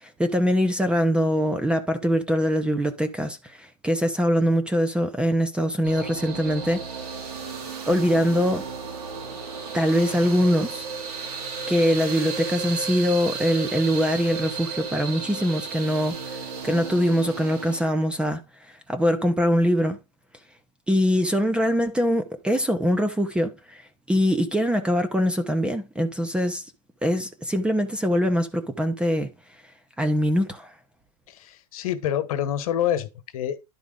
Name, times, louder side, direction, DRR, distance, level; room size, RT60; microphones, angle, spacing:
voice 1, 0.0-6.8 7.9-8.7 9.7-10.9 11.7-18.4 18.9-20.0 20.9-26.6 27.0-29.3 30.0-30.7, equal, 5° right, 0.7 m, -23 dB
sound 1, 5.8-17.8, right 5 dB, 75° right, 3.9 m, -34 dB
voice 2, 31.3-33.6, left 10 dB, 65° left, 1.3 m, -27 dB
11.0 x 4.6 x 3.8 m
supercardioid pair, 150°, 20 cm